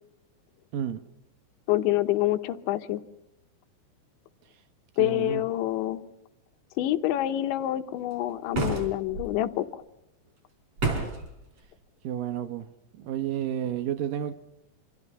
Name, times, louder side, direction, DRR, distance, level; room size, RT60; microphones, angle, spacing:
voice 1, 1.7-3.0 5.0-6.0 6.8-9.8, left 14 dB, 80° left, 3.3 m, -27 dB
voice 2, 5.0-5.4 12.0-12.7 13.0-14.3, right 10 dB, 75° right, 2.1 m, -31 dB
sound 1, 8.5-9.3 10.8-11.3, right 3 dB, 35° right, 4.9 m, -29 dB
27.0 x 26.5 x 5.5 m
omnidirectional pair, 5.4 m